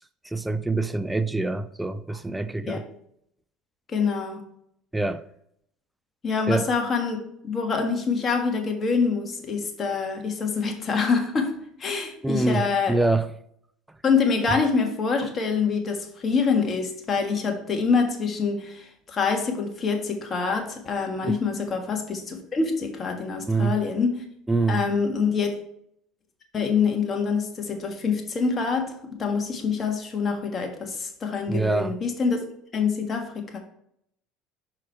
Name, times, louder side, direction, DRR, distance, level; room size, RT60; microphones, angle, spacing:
voice 1, 0.2-2.8 4.9-5.2 6.5-6.7 12.2-13.3 21.2-21.4 23.5-23.8 24.5-24.8 31.5-32.0, right 3 dB, 10° right, 0.4 m, -25 dB
voice 2, 3.9-4.4 6.2-7.2 7.4-12.9 14.0-24.2 24.7-25.5 26.5-28.9 29.2-32.4 32.7-33.6, left 5 dB, 35° left, 1.5 m, -25 dB
5.9 x 4.8 x 4.6 m
hypercardioid pair, 85°, 0 cm